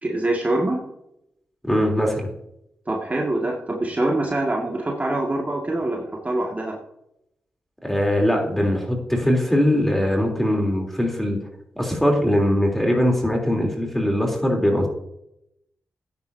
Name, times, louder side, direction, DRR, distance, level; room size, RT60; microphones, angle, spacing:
voice 1, 0.0-0.8 2.9-6.8, right 2 dB, 30° right, -1 dB, 2.1 m, -24 dB
voice 2, 1.7-2.2 7.8-11.4 11.8-14.9, equal, 5° left, 0 dB, 3.5 m, -21 dB
13.5 x 9.6 x 2.8 m, 0.81 s
cardioid pair, 60°, 5 cm